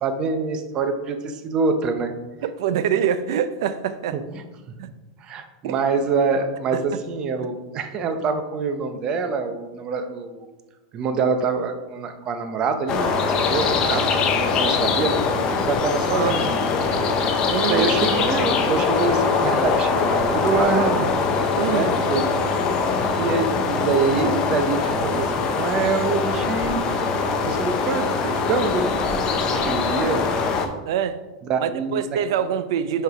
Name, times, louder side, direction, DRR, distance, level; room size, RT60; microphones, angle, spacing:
voice 1, 0.0-2.1 4.1-4.4 5.2-10.5 10.9-15.2 15.7-16.5 17.7-21.1 21.7-22.3 23.2-26.8 27.5-29.0 29.4-30.3 31.4-32.2, right 4 dB, 30° right, 7 dB, 0.8 m, -25 dB
voice 2, 2.4-4.2 4.8-4.9 5.6-5.8 13.6-13.7 16.1-16.4 17.5-17.9 21.6-21.9 30.9-31.2 31.6-33.0, right 8 dB, 70° right, 12 dB, 0.6 m, -25 dB
sound 1, 12.9-30.7, left 4 dB, 30° left, 0.8 m, -22 dB
6.6 x 4.6 x 4.9 m, 1.1 s
supercardioid pair, 150°, 3 cm